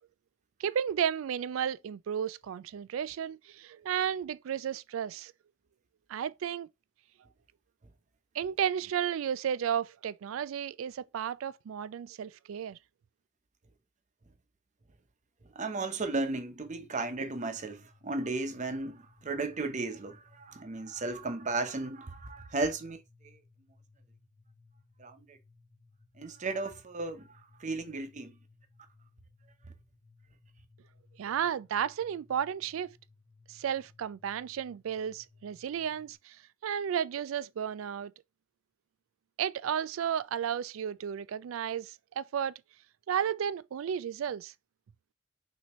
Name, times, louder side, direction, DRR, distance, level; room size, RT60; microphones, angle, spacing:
voice 1, 0.6-5.3 6.1-6.7 8.3-12.8 31.2-33.0 33.5-36.4 36.6-38.1 39.4-42.5 43.1-44.5, right 8 dB, 85° right, 0.3 m, -33 dB
voice 2, 15.5-23.4 25.0-25.4 26.2-27.3 27.6-28.3, right 3 dB, 40° right, 0.8 m, -35 dB
sound 1, 16.6-36.1, left 3 dB, 55° left, 2.1 m, -62 dB
6.0 x 2.8 x 3.0 m
head